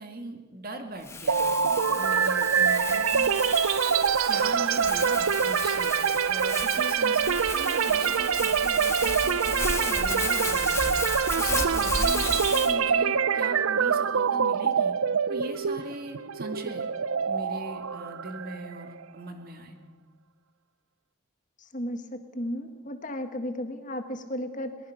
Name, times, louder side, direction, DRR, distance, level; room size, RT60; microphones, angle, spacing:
voice 1, 0.0-3.3 4.3-6.0 6.3-10.9 11.4-14.9 15.3-16.9 17.3-19.8, right 1 dB, 45° right, 5 dB, 2.0 m, -40 dB
Crumpling crinkling, 1.0-12.7, left 3 dB, 10° left, 1.3 m, -34 dB
sound 1, 1.3-19.0, right 6 dB, 75° right, 0.6 m, -25 dB
voice 2, 21.7-24.8, left 1 dB, 35° left, 7 dB, 1.7 m, -34 dB
22.5 x 19.5 x 5.8 m, 1.4 s
head